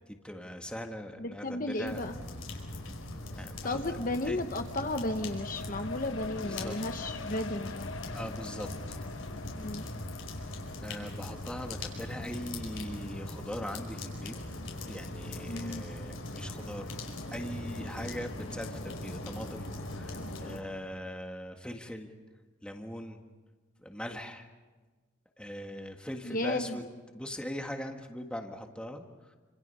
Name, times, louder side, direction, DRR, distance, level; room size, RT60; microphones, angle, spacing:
voice 1, 0.1-2.0 3.3-3.8 4.2-4.4 6.4-6.8 8.1-9.0 10.8-14.4 14.9-17.0 17.3-19.7 19.9-22.1 22.6-23.2 23.8-24.5 25.4-26.9 27.1-29.4, equal, 5° left, 4 dB, 1.6 m, -40 dB
voice 2, 1.2-2.2 3.6-7.9 9.5-9.8 15.5-15.8 26.2-26.8, left 2 dB, 40° left, 6 dB, 1.0 m, -34 dB
sound 1, 1.8-20.6, left 1 dB, 85° left, 5.2 m, -40 dB
sound 2, 3.8-16.6 17.0-17.1, left 4 dB, 70° left, 1.0 m, -46 dB
29.0 x 26.5 x 5.5 m, 1.3 s
head